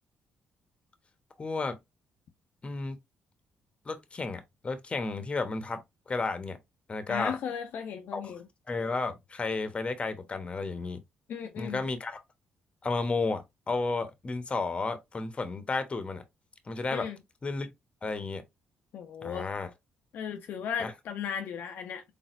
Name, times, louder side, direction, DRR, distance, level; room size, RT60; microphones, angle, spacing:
voice 1, 1.4-1.8 2.6-3.0 3.9-6.6 6.9-7.4 8.1-8.3 8.7-11.0 11.6-12.2 12.8-16.2 16.7-17.1 17.4-17.7 18.0-18.4 19.2-19.7 20.8-20.9, left 3 dB, 35° left, 1.0 m, -32 dB
voice 2, 7.1-8.4 11.3-11.9 16.9-17.2 18.9-19.5 20.1-22.0, left 8 dB, 70° left, 0.6 m, -36 dB
4.1 x 3.4 x 2.6 m
supercardioid pair, 65°, 3 cm